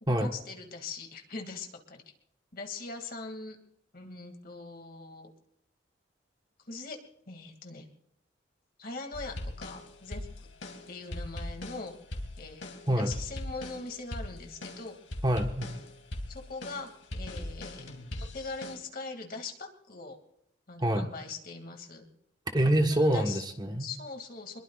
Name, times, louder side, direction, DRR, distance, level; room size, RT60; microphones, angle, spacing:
voice 1, 0.0-2.0 2.5-3.6 3.9-5.3 6.7-7.0 7.3-7.9 8.8-10.3 10.9-14.9 16.3-17.9 18.3-20.2 20.7-22.0 22.9-23.4 23.8-24.6, left 3 dB, 50° left, 3 dB, 2.4 m, -41 dB
sound 1, 9.1-18.8, left 1 dB, 85° left, 2.7 m, -40 dB
voice 2, 15.2-15.7 20.8-21.1 22.5-23.8, right 1 dB, 20° right, 5 dB, 1.3 m, -26 dB
26.0 x 22.0 x 2.5 m, 0.79 s
head